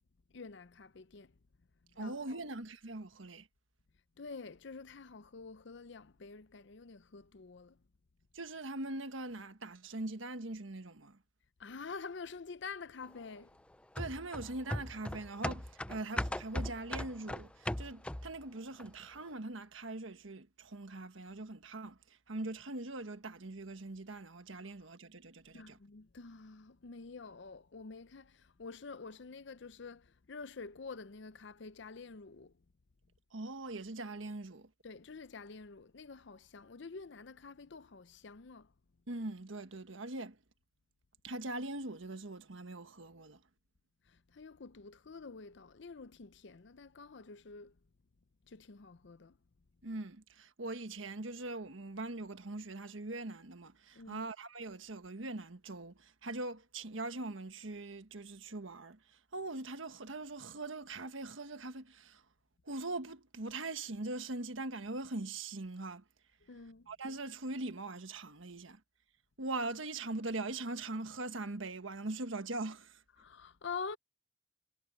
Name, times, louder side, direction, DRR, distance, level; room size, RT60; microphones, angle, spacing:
voice 1, 0.3-1.3 2.0-2.5 4.2-7.8 11.6-13.6 25.5-32.5 34.8-38.7 44.1-47.8 48.5-49.4 53.9-54.3 66.4-66.9 73.1-74.0, left 4 dB, 60° left, 0.6 m, -48 dB
voice 2, 2.0-3.5 8.3-11.2 14.0-25.8 33.3-34.7 39.1-40.4 41.2-43.4 49.8-62.2 62.7-66.0 66.9-68.8 69.4-73.0, right 2 dB, 75° right, 1.5 m, -42 dB
sound 1, 14.0-18.4 18.8-18.9, left 1 dB, 5° left, 0.4 m, -38 dB
head